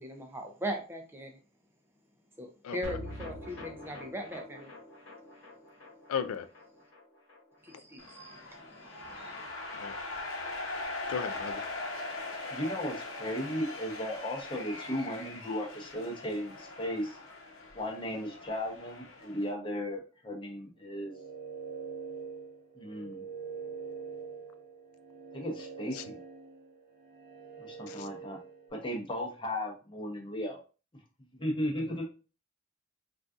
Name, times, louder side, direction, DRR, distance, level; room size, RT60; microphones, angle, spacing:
voice 1, 0.0-1.3 2.4-4.7 7.6-9.4, equal, 10° right, 0.4 m, -40 dB
sound 1, 2.8-9.3 9.5-9.6 9.9-10.0, left 1 dB, 55° left, 1.1 m, -47 dB
voice 2, 6.1-6.5 9.7-10.0 11.1-11.6 25.9-26.0 27.9-28.1, left 7 dB, 90° left, 0.3 m, -35 dB
sound 2, 8.0-19.5, left 2 dB, 70° left, 0.8 m, -41 dB
voice 3, 12.5-17.2 17.7-21.2 22.8-23.2 25.3-26.2 27.6-28.4 28.7-30.6 31.3-32.0, equal, 20° left, 0.7 m, -36 dB
sound 3, 20.8-28.7, right 5 dB, 30° right, 0.9 m, -44 dB
3.8 x 2.4 x 2.4 m
head